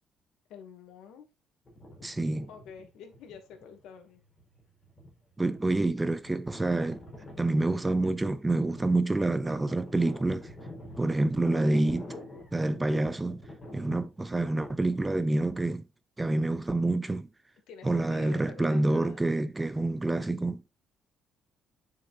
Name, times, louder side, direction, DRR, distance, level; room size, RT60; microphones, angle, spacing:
voice 1, 0.5-1.3 2.5-4.2 13.6-14.0 17.7-19.3, left 7 dB, 80° left, 2.4 m, -48 dB
sound 1, 1.6-3.8 4.4-15.2, left 1 dB, 20° left, 4.8 m, -46 dB
voice 2, 2.0-2.5 5.4-7.0 7.4-10.5 11.0-12.1 12.5-13.4 13.7-15.8 16.2-17.3 17.8-20.6, right 2 dB, 10° right, 0.5 m, -27 dB
9.4 x 6.7 x 2.7 m
cardioid pair, 170°, 0 cm